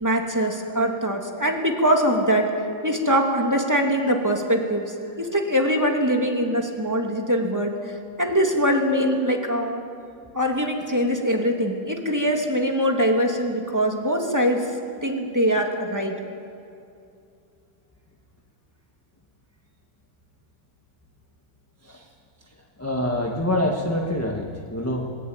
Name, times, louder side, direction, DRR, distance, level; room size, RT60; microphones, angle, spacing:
voice 1, 0.0-2.5 2.8-4.9 5.2-7.7 8.2-9.8 10.3-14.6 15.0-16.2, equal, 10° right, 1 dB, 2.4 m, -22 dB
voice 2, 22.8-25.2, left 1 dB, 10° left, 1 dB, 1.2 m, -26 dB
22.0 x 21.0 x 9.0 m, 2.5 s
omnidirectional pair, 2.2 m